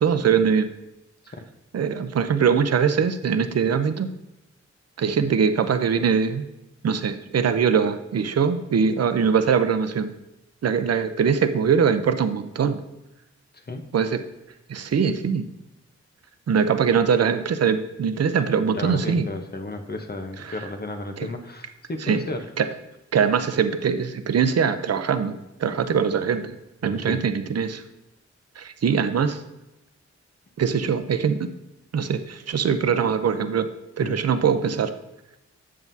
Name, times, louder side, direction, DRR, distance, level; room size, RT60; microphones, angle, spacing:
voice 1, 0.0-0.7 1.7-4.1 5.0-6.5 6.8-10.1 10.6-12.8 13.9-14.2 14.7-15.4 16.5-19.3 20.4-20.7 21.2-21.3 22.0-22.2 22.6-22.7 23.1-26.5 26.8-27.8 28.6-29.4 30.6-31.5 31.9-33.7 34.0-35.0, right 6 dB, 60° right, 10 dB, 0.6 m, -22 dB
voice 2, 13.5-13.9 18.7-22.4 26.8-27.2 34.0-34.2, left 2 dB, 35° left, 5 dB, 0.9 m, -33 dB
7.4 x 7.1 x 2.7 m, 0.94 s
cardioid pair, 65°, 29 cm